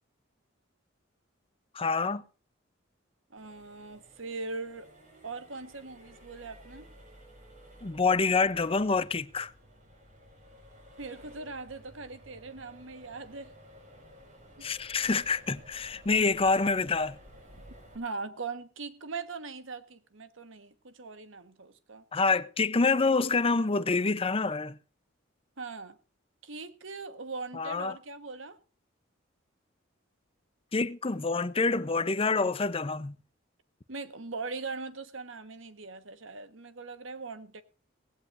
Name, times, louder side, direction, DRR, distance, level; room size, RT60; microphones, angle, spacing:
voice 1, 1.7-2.2 7.8-9.5 14.6-17.2 22.1-24.8 27.5-28.0 30.7-33.1, left 4 dB, 30° left, 0.6 m, -27 dB
voice 2, 3.3-4.9 5.2-6.9 11.0-13.5 14.6-14.7 17.9-22.0 25.6-26.0 26.4-28.6 33.9-37.6, right 4 dB, 75° right, 1.4 m, -40 dB
Accelerating revving vroom, 3.4-18.0, equal, 40° right, 5.2 m, -54 dB
18.0 x 16.0 x 2.6 m
head